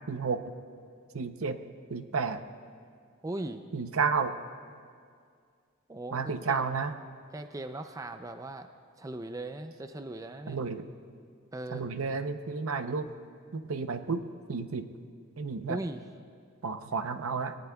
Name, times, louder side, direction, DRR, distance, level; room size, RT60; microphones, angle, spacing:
voice 1, 0.1-0.4 1.1-1.6 1.9-2.4 3.7-4.4 6.1-6.9 10.5-10.9 11.7-13.1 13.5-14.2 14.5-14.9 15.4-15.8 16.6-17.6, right 5 dB, 75° right, 9 dB, 0.7 m, -31 dB
voice 2, 3.2-3.6 5.9-6.6 7.3-8.7 9.0-10.6 11.5-11.9 15.7-16.0, right 2 dB, 15° right, 7 dB, 0.4 m, -38 dB
22.5 x 18.5 x 2.3 m, 2.2 s
head